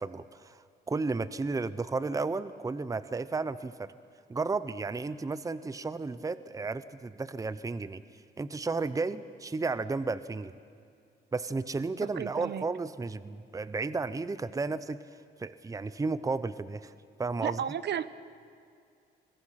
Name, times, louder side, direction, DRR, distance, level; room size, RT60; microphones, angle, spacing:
voice 1, 0.0-3.9 4.3-8.0 8.4-10.6 11.3-15.0 15.4-16.9 17.2-17.6, right 3 dB, 15° right, 15 dB, 0.7 m, -33 dB
voice 2, 12.1-12.6 17.4-18.1, right 9 dB, 60° right, 15 dB, 0.9 m, -33 dB
27.5 x 21.5 x 5.8 m, 2.3 s
cardioid pair, 90°, 20 cm